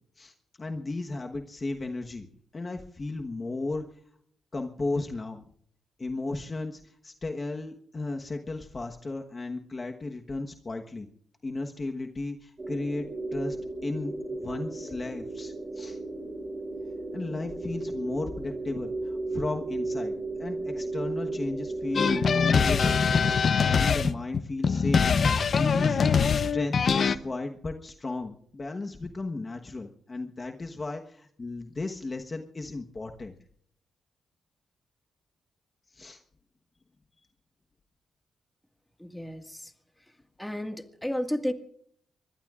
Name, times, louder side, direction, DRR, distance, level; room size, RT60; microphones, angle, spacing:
voice 1, 0.2-2.3 2.5-3.8 4.5-5.4 6.0-11.1 11.4-13.0 13.3-13.6 13.8-16.0 17.1-23.0 23.6-26.0 26.3-33.3 35.9-36.2, left 2 dB, 30° left, 3 dB, 1.2 m, -35 dB
sound 1, 12.6-23.5, right 2 dB, 30° right, 7.5 m, -35 dB
sound 2, 22.0-27.2, left 6 dB, 50° left, 0.8 m, -23 dB
voice 2, 39.0-39.7 40.4-41.5, equal, 5° left, 6 dB, 1.9 m, -32 dB
24.5 x 22.0 x 2.5 m, 0.64 s
cardioid pair, 110°, 0 cm